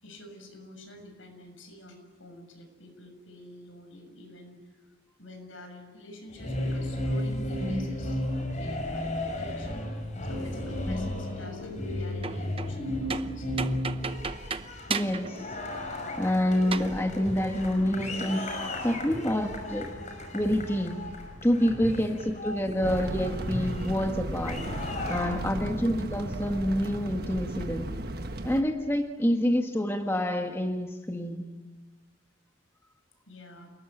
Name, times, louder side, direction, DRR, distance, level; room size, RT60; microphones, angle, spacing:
voice 1, 0.0-4.8 5.2-9.7 10.2-13.9 33.3-33.7, left 1 dB, 80° left, 5 dB, 7.1 m, -47 dB
sound 1, 6.3-25.9, left 1 dB, 40° left, 5.6 m, -34 dB
voice 2, 7.6-7.9 10.9-11.1 14.9-15.6 16.1-18.5 18.8-20.0 20.3-21.0 21.4-24.7 25.1-27.9 28.4-31.4, equal, 10° left, 4 dB, 1.5 m, -27 dB
sound 2, 12.1-12.8 13.1-15.4 15.7-15.8 16.7-16.9, right 5 dB, 30° right, 0.8 m, -34 dB
sound 3, 22.8-28.6, right 1 dB, 50° right, 1.5 m, -35 dB
29.0 x 20.0 x 9.0 m, 1.3 s
head